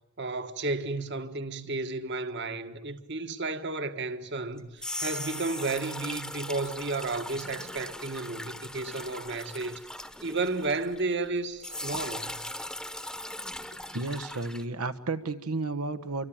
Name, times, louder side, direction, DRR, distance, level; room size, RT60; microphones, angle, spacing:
voice 1, 0.2-12.4, right 3 dB, 50° right, 1.6 m, -33 dB
sound 1, 4.6-11.3 11.6-14.6, left 1 dB, 5° left, 1.1 m, -39 dB
voice 2, 13.9-16.3, right 3 dB, 85° right, 1.4 m, -32 dB
27.5 x 24.0 x 8.9 m
head